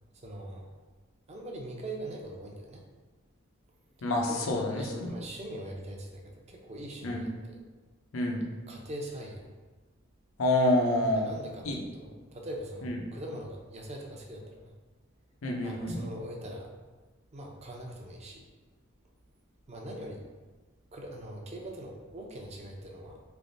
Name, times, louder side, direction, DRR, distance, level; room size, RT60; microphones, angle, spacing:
voice 1, 0.1-0.7 1.3-2.8 4.3-7.6 8.7-9.4 11.2-14.7 15.6-16.7 17.3-18.4 19.7-20.2 20.9-23.2, right 1 dB, 30° right, 0 dB, 0.6 m, -42 dB
voice 2, 4.0-5.2 7.0-7.3 8.1-8.4 10.4-11.3 11.6-11.8 12.8-13.0 15.4-16.1, left 1 dB, 70° left, 1 dB, 0.6 m, -28 dB
4.0 x 3.4 x 2.6 m, 1.3 s
head